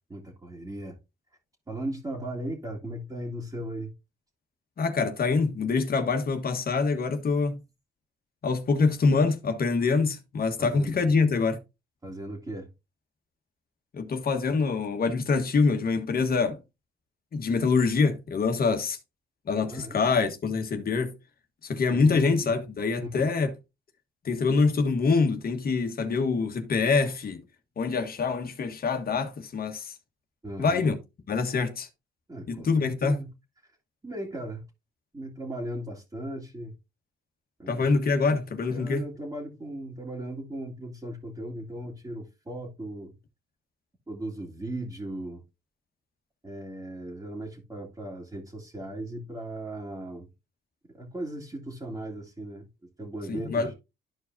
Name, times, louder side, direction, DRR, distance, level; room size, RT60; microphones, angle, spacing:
voice 1, 0.1-1.0 1.7-3.9 10.6-11.0 12.0-12.7 19.7-20.0 21.9-22.5 23.0-23.3 30.4-30.9 32.3-33.3 33.6-33.7 34.0-34.6 35.1-36.7 37.6-38.0 38.7-43.2 44.1-45.4 46.4-50.3 50.9-53.7, right 1 dB, 20° right, 2.4 m, -37 dB
voice 2, 4.8-7.6 8.4-11.6 13.9-16.6 17.3-19.0 19.5-21.2 21.6-23.5 24.2-27.4 27.8-29.9 30.6-31.0 31.3-31.9 32.5-33.2 37.7-39.0 53.3-53.7, left 4 dB, 50° left, 1.5 m, -25 dB
12.5 x 4.8 x 2.7 m
cardioid pair, 90°, 20 cm